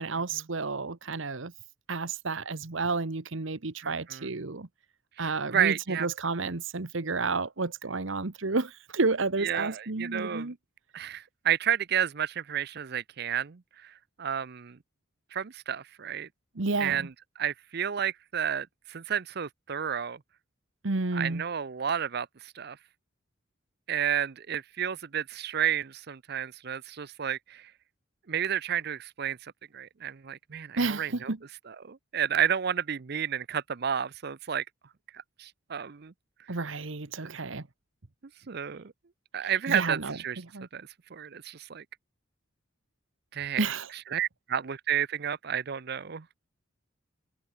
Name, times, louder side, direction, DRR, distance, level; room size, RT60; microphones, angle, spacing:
voice 1, 0.0-1.5 1.9-4.7 5.2-10.6 16.5-17.1 20.8-21.4 30.8-31.4 36.5-37.7 39.7-40.7 43.6-43.9, right 3 dB, 70° right, 1.2 m, -31 dB
voice 2, 5.2-6.1 9.4-10.5 10.9-14.8 15.3-16.3 16.8-17.1 17.4-20.2 21.1-22.8 23.9-27.7 28.3-31.3 31.7-34.6 35.4-36.1 37.2-37.4 38.5-38.9 39.3-40.4 40.7-41.8 43.3-43.6 44.1-46.3, right 9 dB, 50° right, 0.6 m, -31 dB
head